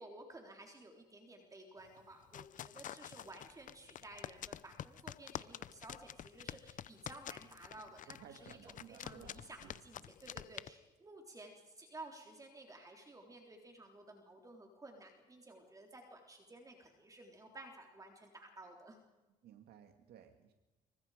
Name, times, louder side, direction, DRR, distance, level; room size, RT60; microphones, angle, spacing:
voice 1, 0.0-19.0, right 2 dB, 20° right, 2 dB, 3.8 m, -54 dB
sound 1, 1.9-10.7, left 10 dB, 50° left, 0.7 m, -48 dB
voice 2, 7.9-10.0 19.4-20.5, right 9 dB, 70° right, 6 dB, 2.0 m, -58 dB
26.5 x 24.0 x 5.1 m, 1.1 s
cardioid pair, 110°, 17 cm